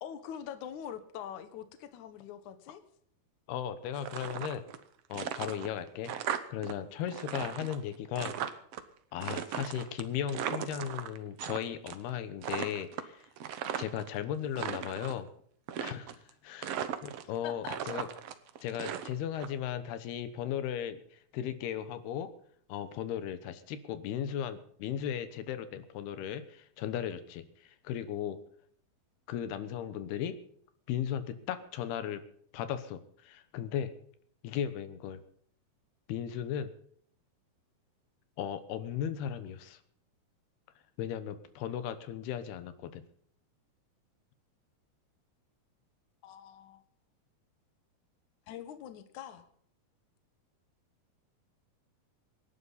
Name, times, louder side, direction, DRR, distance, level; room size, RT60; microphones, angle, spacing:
voice 1, 0.0-2.8 17.4-17.8 46.2-46.8 48.5-49.5, left 9 dB, 60° left, 10 dB, 2.4 m, -43 dB
voice 2, 3.5-4.6 5.1-8.3 9.1-13.2 13.8-15.3 15.8-18.1 18.6-22.3 22.7-28.4 29.3-30.4 30.9-32.2 32.5-33.9 34.4-35.2 36.1-36.7 38.4-39.8 41.0-43.0, left 9 dB, 85° left, 11 dB, 3.1 m, -36 dB
sound 1, 3.9-4.8 5.1-6.7 7.0-8.8 9.2-11.6 11.9-12.1 12.4-14.1 14.4-15.2 15.7-16.3 16.6-17.4 17.6-19.5, right 9 dB, 90° right, 1.3 m, -37 dB
26.0 x 11.0 x 4.1 m, 0.64 s
omnidirectional pair, 4.5 m